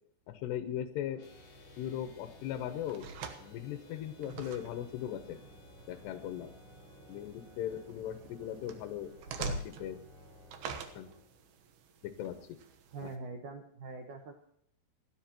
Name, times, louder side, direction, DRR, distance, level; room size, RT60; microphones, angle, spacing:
voice 1, 0.3-1.2 1.8-3.1 3.4-5.4 5.9-6.5 7.1-9.1 9.4-10.0 10.8-11.1 12.0-12.6 13.0-13.1, left 10 dB, 75° left, 7 dB, 2.9 m, -39 dB
Organ, 1.0-11.8, equal, 30° left, 4.2 m, -57 dB
sound 1, 1.2-7.9, left 8 dB, 55° left, 3.2 m, -63 dB
sound 2, 1.2-13.2, right 4 dB, 70° right, 2.6 m, -47 dB
voice 2, 12.9-14.3, right 3 dB, 85° right, 4 dB, 1.7 m, -43 dB
28.5 x 10.0 x 3.0 m, 0.68 s
omnidirectional pair, 5.4 m